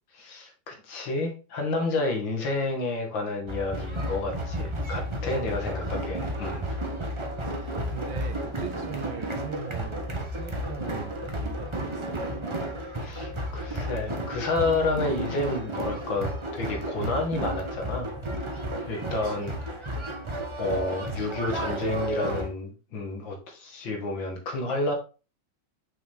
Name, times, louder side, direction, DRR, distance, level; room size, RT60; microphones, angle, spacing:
voice 1, 0.1-6.8 13.0-19.8 20.6-25.0, left 2 dB, 70° left, 2.4 m, -30 dB
sound 1, 3.5-22.5, right 1 dB, 30° right, 0.5 m, -32 dB
voice 2, 7.4-12.2 19.1-19.5, right 8 dB, 75° right, 1.7 m, -41 dB
6.0 x 5.9 x 3.5 m
omnidirectional pair, 2.2 m